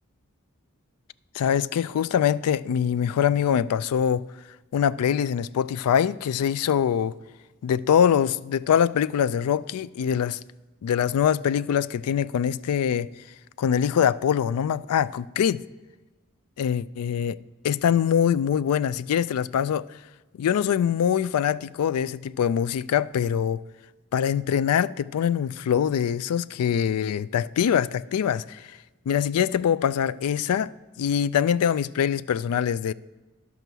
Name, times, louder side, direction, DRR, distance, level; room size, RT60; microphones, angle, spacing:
voice 1, 1.3-4.2 4.7-7.1 7.6-10.4 10.8-13.1 13.6-15.6 16.6-17.4 17.6-19.9 20.4-23.6 24.1-28.7 29.1-30.7 31.0-32.9, left 8 dB, 75° left, 0.3 m, -23 dB
10.5 x 6.2 x 6.7 m
head